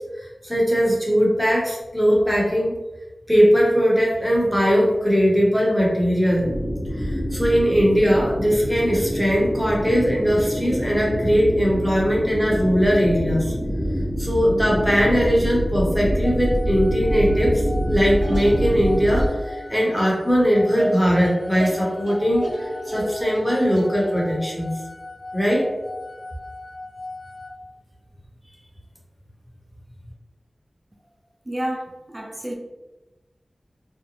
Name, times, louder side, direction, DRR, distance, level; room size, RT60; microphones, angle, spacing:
voice 1, 0.2-2.7 3.3-6.5 7.0-13.5 14.2-17.6 17.9-24.7 25.3-25.7, equal, ahead, -4 dB, 0.8 m, -20 dB
sound 1, 6.4-19.3, equal, 35° left, 1.0 m, -26 dB
sound 2, 16.2-27.5, left 2 dB, 55° left, 0.4 m, -38 dB
sound 3, 17.9-24.3, equal, 80° right, 1.1 m, -33 dB
voice 2, 31.4-32.5, right 1 dB, 30° right, 0 dB, 0.5 m, -30 dB
2.5 x 2.1 x 2.8 m, 1.1 s
wide cardioid pair, 70°, 0 cm